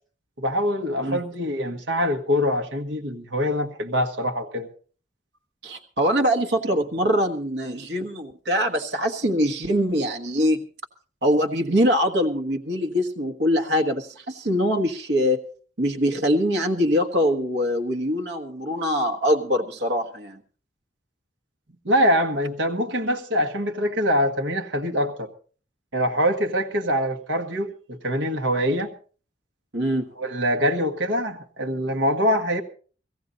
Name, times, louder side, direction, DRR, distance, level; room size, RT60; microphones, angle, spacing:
voice 1, 0.4-4.7 21.8-25.3 25.9-28.9 30.2-32.6, equal, 85° right, 1.6 m, -24 dB
voice 2, 5.6-10.7 11.2-15.4 15.8-20.4 29.7-30.1, equal, 70° right, 1.4 m, -23 dB
18.0 x 15.0 x 4.0 m
head